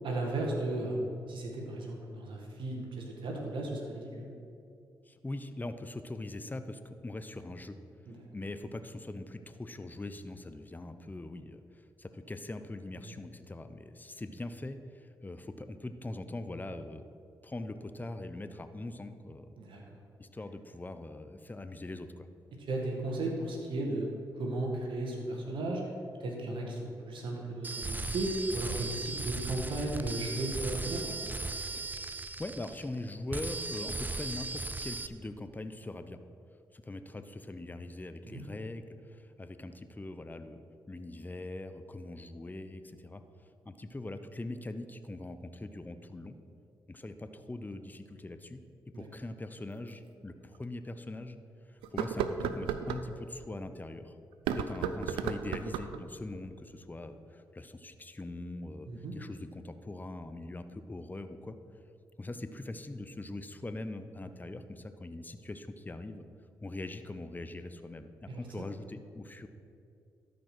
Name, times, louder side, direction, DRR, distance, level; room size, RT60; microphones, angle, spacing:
voice 1, 0.0-4.3 8.1-8.2 19.6-19.8 22.7-24.1 24.4-25.8 26.2-31.2 38.2-38.4 48.9-49.1 58.9-59.1 68.3-68.6, right 2 dB, 70° right, 0 dB, 1.9 m, -35 dB
voice 2, 5.0-7.8 8.3-17.0 17.4-19.6 20.2-22.3 32.4-36.2 36.7-43.2 43.6-46.4 46.9-48.6 48.9-51.4 51.7-54.2 54.5-61.6 62.2-66.2 66.6-69.5, left 2 dB, 20° left, 9 dB, 0.7 m, -42 dB
sound 1, 27.6-33.0 33.3-35.1, right 3 dB, 20° right, 0.6 m, -37 dB
sound 2, 48.6-48.7 49.9-50.0 50.6-50.7 51.8-53.1 54.3-56.0, right 8 dB, 85° right, 0.4 m, -34 dB
12.5 x 5.2 x 6.1 m, 2.5 s
supercardioid pair, 45°, 9 cm